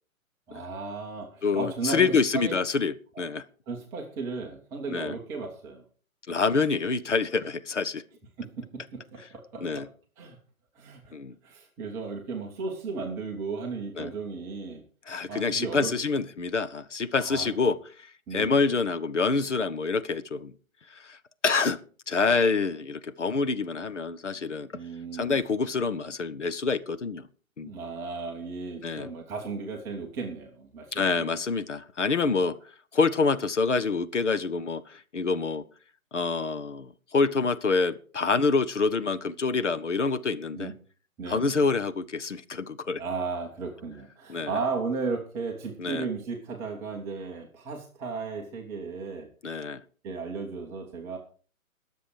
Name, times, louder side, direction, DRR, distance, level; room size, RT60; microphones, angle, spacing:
voice 1, 0.5-2.6 3.1-3.3 3.7-5.8 8.4-9.9 10.2-10.4 10.8-11.1 11.4-14.8 15.3-15.9 17.2-17.5 18.3-18.6 24.7-25.4 27.6-31.3 32.3-32.5 40.5-40.7 41.2-41.6 43.0-49.3 50.0-51.2, right 4 dB, 5° right, 0 dB, 0.8 m, -35 dB
voice 2, 1.4-3.4 4.9-5.2 6.3-8.0 9.6-9.9 11.1-11.3 14.0-14.1 15.1-20.5 21.0-21.2 21.4-21.8 22.1-24.7 25.1-27.3 27.6-27.7 28.8-29.1 30.9-32.5 32.9-35.6 36.1-40.7 41.3-43.0 44.3-44.5 45.8-46.1 49.4-49.8, left 4 dB, 60° left, 12 dB, 1.1 m, -27 dB
21.0 x 7.4 x 4.8 m, 0.41 s
figure-of-eight pair, 135°, 42 cm